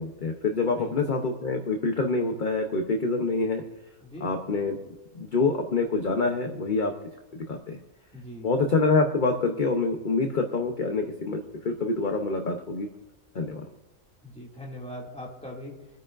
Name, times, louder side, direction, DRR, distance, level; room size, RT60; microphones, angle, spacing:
voice 1, 0.0-3.6 4.2-4.8 5.1-6.9 7.3-7.8 8.4-12.9 13.3-13.6, left 3 dB, 40° left, 4 dB, 0.9 m, -26 dB
voice 2, 0.7-1.2 4.0-4.4 8.1-8.6 14.2-15.7, equal, 5° left, -3 dB, 2.4 m, -41 dB
27.5 x 9.3 x 2.6 m, 1.1 s
omnidirectional pair, 1.5 m